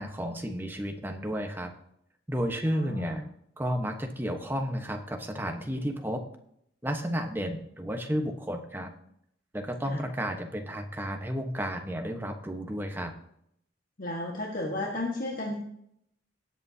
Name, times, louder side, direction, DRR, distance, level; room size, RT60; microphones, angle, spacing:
voice 1, 0.0-1.7 2.3-3.2 3.6-6.2 6.8-8.9 9.5-13.1, equal, 10° right, 4 dB, 1.1 m, -32 dB
voice 2, 2.6-3.2 9.8-10.0 14.0-15.5, left 1 dB, 50° left, -1 dB, 1.5 m, -33 dB
18.5 x 8.2 x 2.8 m, 0.72 s
head